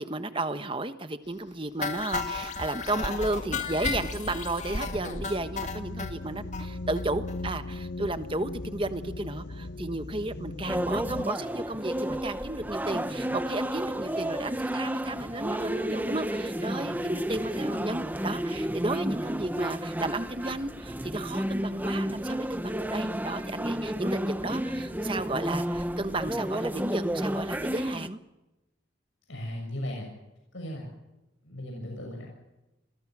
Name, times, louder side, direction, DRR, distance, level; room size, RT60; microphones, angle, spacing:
voice 1, 0.0-28.2, right 2 dB, 25° right, 10 dB, 1.3 m, -33 dB
sound 1, 1.8-6.1 6.5-6.6 7.0-7.1 7.3-7.4 7.7-7.8, left 3 dB, 40° left, 2.2 m, -33 dB
sound 2, 2.7-11.3, left 2 dB, 65° left, 1.2 m, -39 dB
sound 3, 10.7-28.1, right 1 dB, 10° right, 0.9 m, -31 dB
voice 2, 29.3-30.1 30.5-30.9 31.4-32.3, left 1 dB, 90° left, 1 dB, 7.0 m, -36 dB
29.0 x 22.5 x 6.2 m, 1.0 s
head